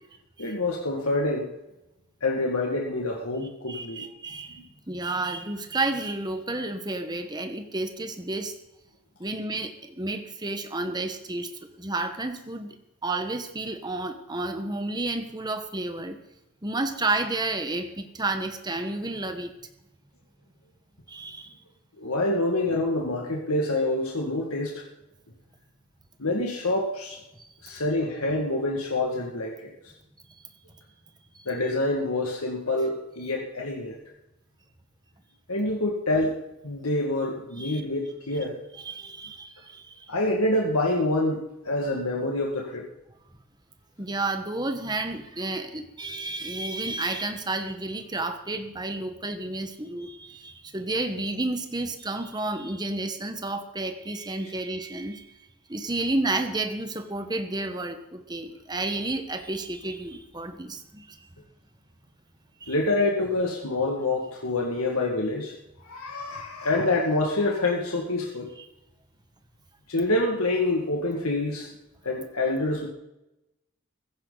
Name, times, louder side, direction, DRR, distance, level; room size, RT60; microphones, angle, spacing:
voice 1, 0.4-1.5 2.2-4.1 22.0-24.8 26.2-27.2 27.6-29.7 31.5-34.0 35.5-36.4 36.6-38.6 40.1-41.4 41.6-42.9 62.7-65.6 65.8-68.5 69.9-71.7 72.0-72.9, left 2 dB, 80° left, 0 dB, 2.1 m, -26 dB
voice 2, 3.7-8.5 9.2-11.5 11.8-12.7 13.0-16.2 16.6-19.5 21.1-21.5 27.3-27.5 31.3-31.4 37.6-37.8 38.7-40.1 44.0-55.3 55.7-61.2 62.6-62.7 68.5-68.6, right 2 dB, 20° right, 7 dB, 1.3 m, -31 dB
15.5 x 15.5 x 4.1 m, 0.91 s
head